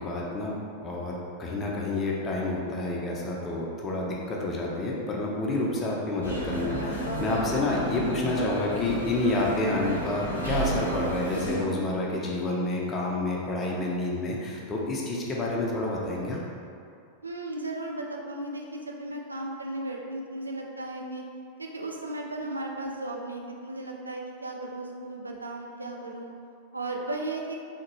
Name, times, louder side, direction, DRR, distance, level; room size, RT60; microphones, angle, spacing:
voice 1, 0.0-16.4, left 2 dB, 25° left, -3 dB, 0.5 m, -29 dB
sound 1, 6.2-11.6, right 1 dB, 85° left, 0.6 m, -32 dB
voice 2, 17.2-21.2 21.6-26.3 26.7-27.5, right 2 dB, 80° right, 0 dB, 0.3 m, -35 dB
3.6 x 2.1 x 3.0 m, 2.4 s
figure-of-eight pair, 90°, 0 cm